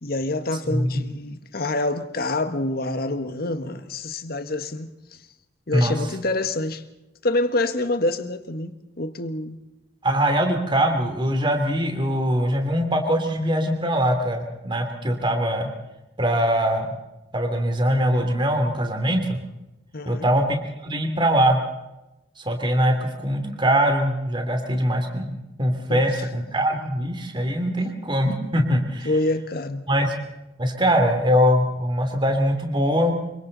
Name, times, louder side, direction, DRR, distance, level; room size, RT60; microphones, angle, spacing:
voice 1, 0.0-4.9 5.7-6.8 7.2-9.6 19.9-20.3 25.9-26.0 29.0-29.8, left 2 dB, 60° left, 1.6 m, -26 dB
voice 2, 10.0-15.7 16.2-16.9 17.3-19.4 20.0-20.6 20.8-21.6 22.4-29.1 29.9-30.1 30.6-33.2, equal, 30° right, 3.0 m, -22 dB
27.5 x 24.5 x 4.1 m
head